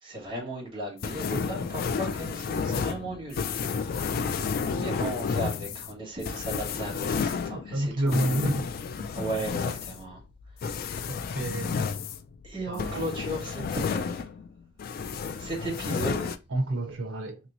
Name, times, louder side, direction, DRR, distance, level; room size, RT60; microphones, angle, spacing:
voice 1, 0.0-4.4 4.8-8.2 9.1-10.2 10.6-11.3 12.4-14.3 15.2-16.4, right 1 dB, 25° right, 1.7 m, -36 dB
sound 1, 1.0-14.5 14.8-16.4, left 5 dB, 50° left, 0.3 m, -31 dB
voice 2, 7.7-8.7 9.0-9.3 11.1-11.8 12.7-13.0 16.5-17.4, right 1 dB, 85° right, 0.6 m, -29 dB
3.0 x 2.9 x 2.6 m
head